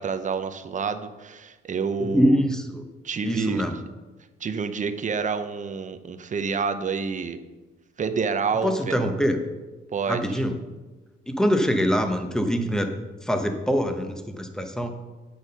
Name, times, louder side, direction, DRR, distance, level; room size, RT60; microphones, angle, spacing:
voice 1, 0.0-2.4 3.0-3.7 4.4-7.4 8.0-9.1 9.9-10.4, right 5 dB, 40° right, 9 dB, 0.8 m, -28 dB
voice 2, 2.0-2.8 3.2-3.8 8.6-9.4 10.1-10.5 11.3-12.9 13.2-14.9, equal, 5° left, 5 dB, 1.1 m, -24 dB
8.7 x 6.4 x 5.6 m, 1.2 s
cardioid pair, 90°, 20 cm